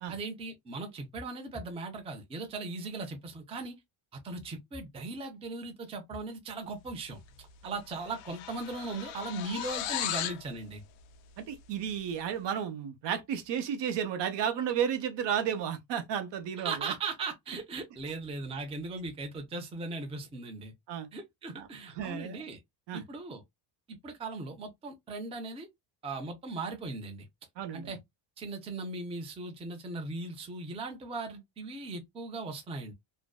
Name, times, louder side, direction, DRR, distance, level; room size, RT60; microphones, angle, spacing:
voice 1, 0.1-3.7 4.1-10.8 16.6-20.7 21.1-22.6 22.9-23.4 23.9-25.7 26.0-27.3 27.7-28.0 28.4-32.9, right 3 dB, 15° right, 0.4 m, -38 dB
sound 1, 7.3-7.5 7.7-10.5, left 12 dB, 80° left, 0.6 m, -36 dB
voice 2, 11.4-16.9 20.9-21.1 21.6-21.7 22.0-22.4 22.9-23.0 27.6-27.9, right 8 dB, 60° right, 0.7 m, -33 dB
2.5 x 2.2 x 2.2 m
cardioid pair, 110°, 48 cm